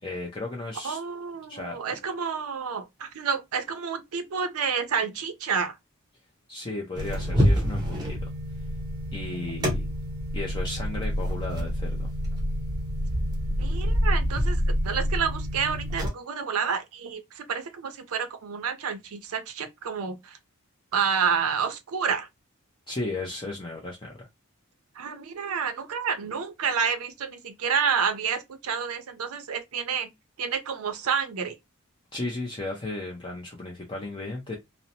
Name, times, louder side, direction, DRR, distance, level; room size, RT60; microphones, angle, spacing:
voice 1, 0.0-1.0 1.5-1.8 6.5-8.3 9.1-9.8 10.3-12.1 22.9-24.3 32.1-34.5, left 2 dB, 20° left, 0.5 m, -34 dB
voice 2, 0.8-5.8 13.6-20.4 20.9-22.3 24.9-30.1 30.4-31.6, right 6 dB, 80° right, 0.5 m, -29 dB
sound 1, 6.9-16.1, equal, 20° right, 0.6 m, -27 dB
2.7 x 2.0 x 2.6 m
head